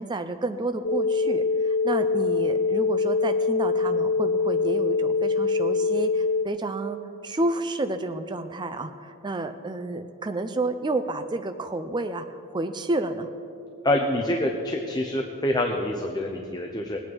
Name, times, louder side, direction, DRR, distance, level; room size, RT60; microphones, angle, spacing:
voice 1, 0.0-12.2 12.5-13.3, right 2 dB, 20° right, 8 dB, 0.4 m, -30 dB
sound 1, 0.8-6.4, left 4 dB, 80° left, 1.2 m, -24 dB
voice 2, 13.8-17.0, left 1 dB, 20° left, 2 dB, 0.7 m, -26 dB
20.5 x 8.6 x 4.6 m, 2.6 s
head